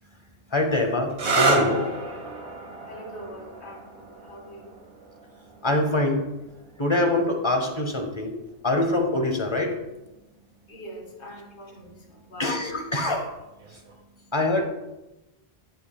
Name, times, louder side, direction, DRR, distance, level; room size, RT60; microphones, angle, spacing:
voice 1, 0.0-0.5 2.2-5.7 6.6-6.8 8.5-8.7 10.2-12.6 13.6-14.3, right 1 dB, 50° left, 0 dB, 1.6 m, -46 dB
voice 2, 0.5-1.9 5.6-6.3 6.8-8.4 8.6-9.8 12.4-13.3 14.3-14.6, left 2 dB, 30° left, 4 dB, 0.8 m, -24 dB
sound 1, 1.1-8.5 9.5-10.1 13.6-13.9, right 3 dB, 90° right, 1.2 m, -30 dB
10.0 x 5.2 x 2.2 m, 1.0 s
omnidirectional pair, 1.1 m